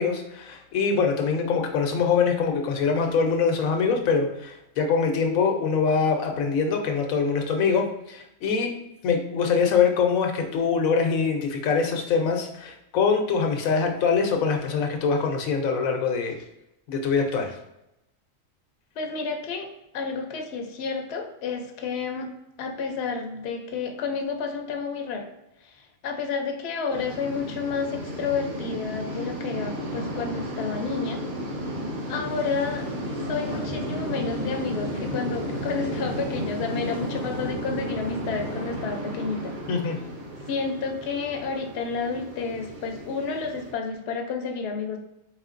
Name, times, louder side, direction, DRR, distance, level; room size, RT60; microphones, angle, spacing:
voice 1, 0.0-8.8 9.0-16.4 16.9-17.5 39.7-39.9, left 5 dB, 85° left, 4 dB, 1.1 m, -24 dB
voice 2, 19.0-19.7 19.9-22.3 22.6-25.3 25.6-31.2 32.1-32.9 33.3-39.5 40.5-45.0, left 5 dB, 60° left, 3 dB, 0.7 m, -30 dB
sound 1, 26.9-43.7, equal, 45° right, 0.7 m, -33 dB
4.3 x 3.4 x 2.5 m, 0.87 s
omnidirectional pair, 1.4 m